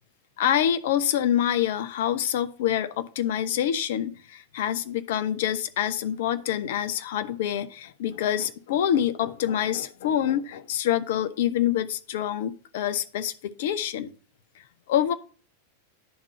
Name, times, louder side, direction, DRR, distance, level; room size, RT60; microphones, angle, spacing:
voice 1, 0.4-14.1 14.9-15.1, left 10 dB, 55° left, 11 dB, 0.5 m, -26 dB
10.5 x 3.7 x 5.3 m, 0.40 s
figure-of-eight pair, 90°, 0 cm